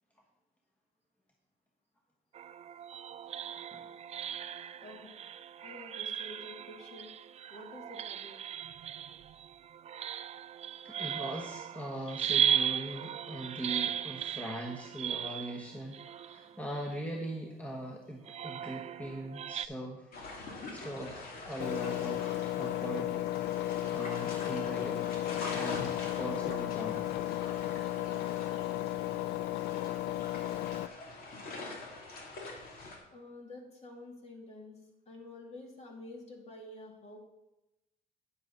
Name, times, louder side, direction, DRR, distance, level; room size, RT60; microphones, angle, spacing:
sound 1, 2.3-17.3 18.3-19.7, right 9 dB, 40° right, 0.3 m, -37 dB
voice 1, 4.8-5.1 5.6-7.1 7.5-8.4 33.1-34.8 35.1-37.2, left 2 dB, 40° left, 1 dB, 2.4 m, -49 dB
voice 2, 10.8-20.2 20.5-22.3 22.6-23.2 23.6-25.1 25.5-27.1, right 1 dB, 10° left, -1 dB, 1.3 m, -41 dB
sound 2, 20.1-33.0, left 2 dB, 60° left, 2.6 m, -45 dB
Engine, 21.6-30.9, left 14 dB, 85° left, 0.4 m, -34 dB
9.7 x 7.6 x 3.9 m, 0.93 s
cardioid pair, 110°, 17 cm